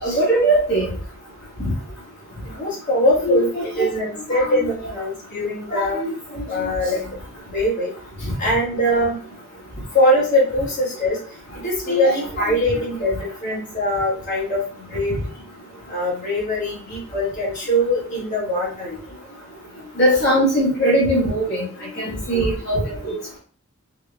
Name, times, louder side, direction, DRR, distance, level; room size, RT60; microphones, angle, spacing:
voice 1, 0.0-0.9 3.2-3.9 4.3-4.4 5.7-6.1 11.9-12.2 20.0-21.6 22.0-23.2, right 1 dB, 55° left, -8 dB, 1.5 m, -20 dB
voice 2, 2.4-6.0 6.5-7.0 7.5-7.9 8.4-9.2 9.9-11.2 11.5-15.2 15.9-19.0, equal, 40° left, -5 dB, 1.9 m, -22 dB
4.6 x 2.2 x 3.3 m, 0.43 s
head